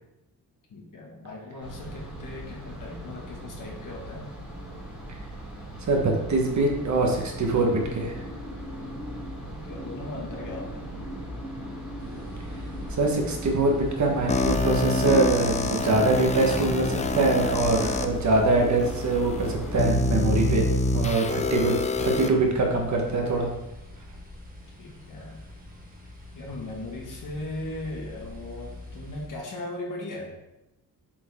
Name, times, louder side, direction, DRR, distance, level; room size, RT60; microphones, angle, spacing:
voice 1, 0.7-4.3 9.5-10.8 24.8-25.5 26.3-30.4, left 2 dB, 55° left, -1 dB, 1.8 m, -38 dB
sound 1, 1.6-19.8, equal, 5° right, 2.5 m, -38 dB
voice 2, 5.8-8.2 12.9-20.7 20.9-21.7 22.0-23.5, right 2 dB, 50° right, 1 dB, 1.3 m, -23 dB
sound 2, 12.0-29.3, left 2 dB, 25° right, 1.4 m, -40 dB
sound 3, 14.3-18.0 18.8-18.9 19.8-22.3, left 2 dB, 20° left, 0.4 m, -26 dB
7.3 x 4.6 x 3.7 m, 0.90 s
wide cardioid pair, 145°, 38 cm